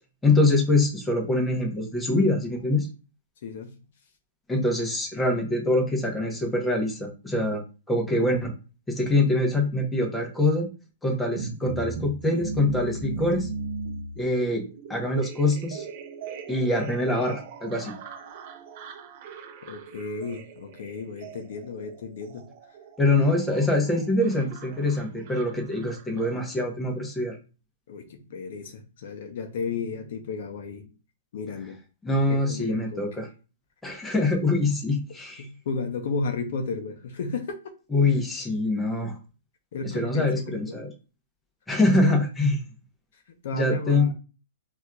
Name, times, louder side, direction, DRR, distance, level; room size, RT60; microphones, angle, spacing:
voice 1, 0.2-2.9 4.5-7.6 7.9-8.5 8.9-10.7 11.0-13.5 14.2-14.6 14.9-15.9 16.5-17.9 23.0-27.4 32.0-33.3 33.8-35.5 37.9-39.2 39.8-40.9 41.7-42.6 43.5-44.1, left 2 dB, 5° left, 1 dB, 0.7 m, -24 dB
voice 2, 3.4-3.7 19.7-22.5 27.9-31.0 31.3-31.8 32.3-33.2 35.4-37.7 39.7-40.8 41.9-42.1 43.4-44.1, left 4 dB, 55° left, 6 dB, 0.6 m, -33 dB
sound 1, 11.3-26.5, right 4 dB, 40° right, 0.6 m, -39 dB
4.3 x 2.4 x 2.2 m, 0.33 s
hypercardioid pair, 165°, 0 cm